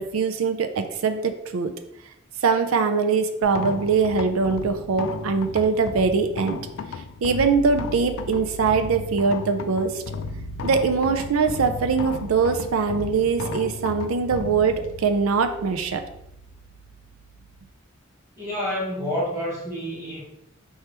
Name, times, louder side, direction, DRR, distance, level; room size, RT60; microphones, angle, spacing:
voice 1, 0.0-1.7 2.4-6.6 7.2-10.0 10.6-16.0, right 5 dB, 85° right, 7 dB, 0.4 m, -22 dB
sound 1, 3.4-17.7, left 3 dB, 85° left, 0.4 m, -35 dB
voice 2, 18.4-20.2, equal, 15° right, -9 dB, 1.3 m, -28 dB
4.7 x 3.3 x 2.9 m, 0.81 s
head